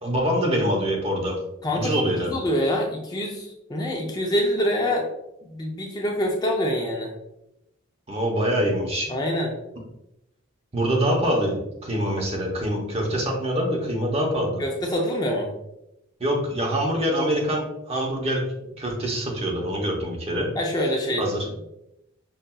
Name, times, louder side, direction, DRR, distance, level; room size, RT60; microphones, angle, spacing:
voice 1, 0.0-1.4 1.7-2.3 8.1-9.1 10.7-14.6 16.2-18.4 18.8-20.5 21.2-21.5, equal, 30° right, 0 dB, 0.7 m, -25 dB
voice 2, 1.6-5.1 5.5-7.1 9.1-9.5 14.6-15.5 20.6-21.3, equal, 20° left, 0 dB, 0.4 m, -25 dB
5.5 x 2.6 x 2.2 m, 0.88 s
head